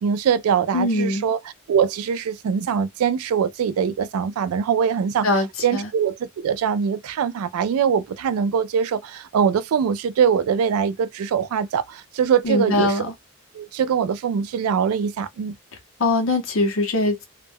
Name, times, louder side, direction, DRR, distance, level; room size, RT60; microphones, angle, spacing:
voice 1, 0.0-1.4 1.7-13.0 13.5-15.5, right 7 dB, 85° right, 0.3 m, -22 dB
voice 2, 0.7-1.2 5.2-5.5 5.7-5.9 12.4-13.1 16.0-17.2, left 2 dB, 65° left, 0.7 m, -21 dB
2.2 x 2.1 x 3.4 m
head